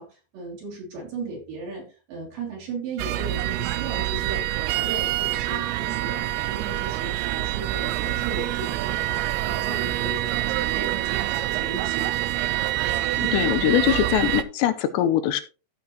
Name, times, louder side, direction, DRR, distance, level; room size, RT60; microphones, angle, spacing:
voice 1, 0.0-12.1, right 3 dB, 50° right, -2 dB, 4.5 m, -37 dB
sound 1, 3.0-14.4, right 15 dB, 90° right, 2.3 m, -26 dB
voice 2, 13.3-15.4, left 11 dB, 85° left, 10 dB, 2.9 m, -22 dB
14.5 x 5.9 x 3.1 m, 0.34 s
omnidirectional pair, 5.2 m